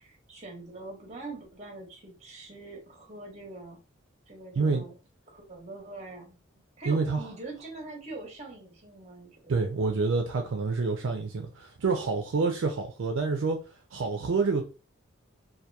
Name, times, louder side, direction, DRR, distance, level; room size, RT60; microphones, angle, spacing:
voice 1, 0.0-3.8 4.3-5.0 5.3-6.4 6.8-9.6, right 2 dB, 30° right, 0.8 m, -43 dB
voice 2, 6.9-7.2 9.5-13.6 13.9-14.6, right 4 dB, 65° right, 0.4 m, -27 dB
2.8 x 2.2 x 2.2 m
head